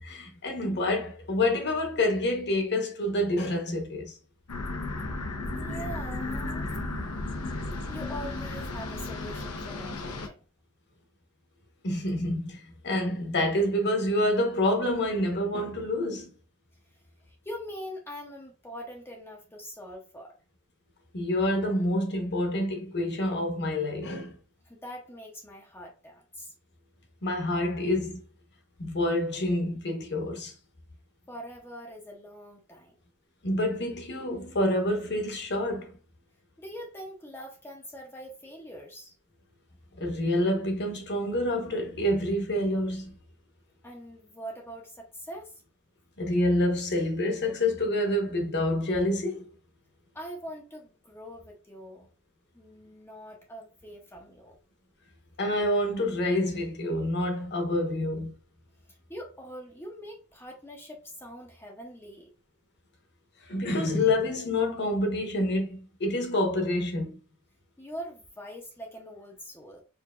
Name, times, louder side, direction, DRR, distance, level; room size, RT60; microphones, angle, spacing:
voice 1, 0.0-4.2 11.8-16.3 21.1-24.3 27.2-28.2 28.8-30.5 33.4-36.0 40.0-43.1 46.2-49.4 55.4-58.3 63.5-67.2, left 1 dB, 50° left, 1.1 m, -27 dB
sound 1, 4.5-10.3, left 2 dB, 85° left, 0.8 m, -34 dB
voice 2, 5.5-6.8 7.9-10.4 17.2-20.3 24.7-26.5 31.3-33.0 36.6-39.1 43.8-45.6 50.1-52.1 52.5-54.6 58.9-62.3 67.8-69.8, equal, 10° left, 0.7 m, -43 dB
4.7 x 2.8 x 2.4 m
head